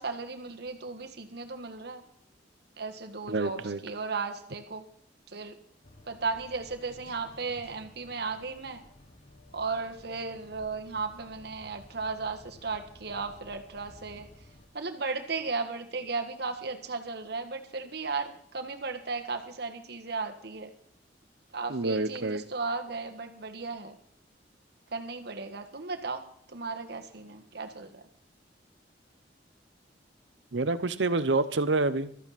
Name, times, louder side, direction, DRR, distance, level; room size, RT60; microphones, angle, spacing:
voice 1, 0.0-2.0 2.8-4.8 5.3-5.5 6.1-8.8 9.5-14.3 14.7-20.7 21.5-24.0 24.9-26.2 26.5-28.0, right 4 dB, 65° right, 5 dB, 1.6 m, -35 dB
voice 2, 3.3-3.8 21.7-22.4 30.5-32.1, right 3 dB, 85° right, 13 dB, 0.9 m, -27 dB
sound 1, 5.8-14.7, left 1 dB, 35° left, 1.5 m, -54 dB
15.0 x 13.5 x 4.2 m, 0.62 s
head